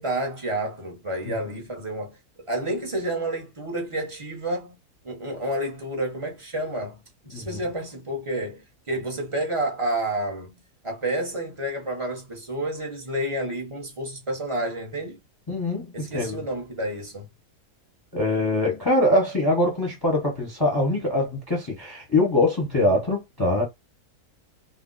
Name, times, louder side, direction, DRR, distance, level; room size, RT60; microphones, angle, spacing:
voice 1, 0.0-2.2 2.5-4.8 5.0-10.6 10.8-15.2 15.9-17.3, right 1 dB, 30° right, 0.6 m, -30 dB
voice 2, 15.5-16.4 18.1-23.6, left 1 dB, 20° left, 0.7 m, -23 dB
2.5 x 2.0 x 3.8 m
omnidirectional pair, 1.6 m